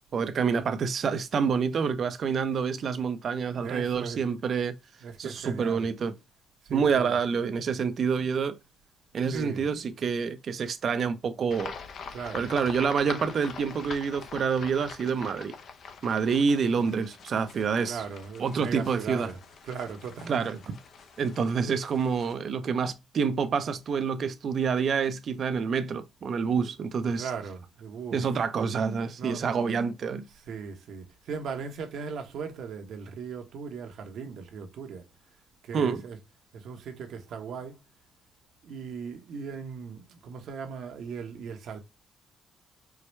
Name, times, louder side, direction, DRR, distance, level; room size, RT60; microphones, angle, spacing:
voice 1, 0.1-4.8 5.2-6.1 6.7-8.6 9.1-11.7 12.3-15.6 16.0-18.0 18.4-19.3 20.3-20.8 21.2-27.3 28.1-30.3 35.7-36.0, right 6 dB, 55° right, 0.6 m, -27 dB
voice 2, 3.6-4.2 5.0-5.8 6.6-7.1 9.3-9.7 12.1-12.5 17.8-20.6 27.0-28.4 29.2-29.5 30.3-35.1 35.6-36.2 36.5-37.8 38.6-41.8, right 6 dB, 75° right, 1.0 m, -38 dB
sound 1, 11.5-22.3, left 5 dB, 60° left, 0.6 m, -44 dB
4.7 x 2.2 x 3.1 m
cardioid pair, 90°, 0 cm